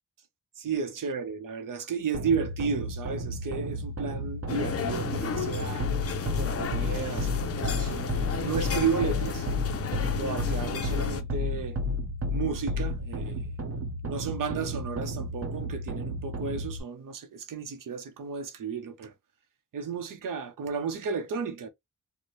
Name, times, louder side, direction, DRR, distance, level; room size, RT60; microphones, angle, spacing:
voice 1, 0.6-5.9 6.2-9.5 10.1-11.8 12.2-13.5 14.0-19.1 19.7-21.7, right 5 dB, 80° right, 0.8 m, -33 dB
sound 1, 2.1-16.8, left 1 dB, 45° right, 0.8 m, -32 dB
sound 2, 4.5-11.2, left 7 dB, 45° left, 0.5 m, -33 dB
4.3 x 2.2 x 3.1 m
wide cardioid pair, 175°, 32 cm